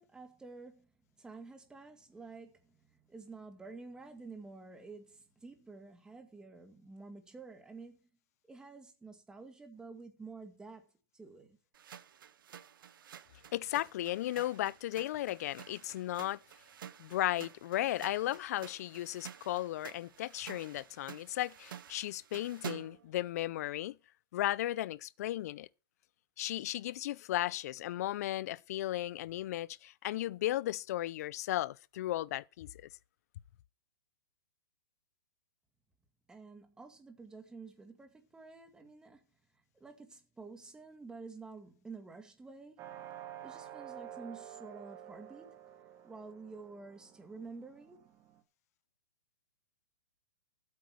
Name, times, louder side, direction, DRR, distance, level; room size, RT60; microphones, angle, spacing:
voice 1, 0.0-8.0 8.5-10.9 11.1-11.6 36.3-39.2 39.5-42.8 43.4-45.6 46.0-48.1, right 4 dB, 5° right, 2.1 m, -50 dB
sound 1, 11.7-23.1, right 9 dB, 70° right, 1.4 m, -51 dB
voice 2, 13.5-16.4 17.0-24.0 24.3-25.7 26.4-32.7, left 14 dB, 45° left, 0.6 m, -35 dB
sound 2, 42.8-48.4, right 11 dB, 20° right, 1.8 m, -50 dB
13.5 x 8.3 x 6.3 m
hypercardioid pair, 155°, 12 cm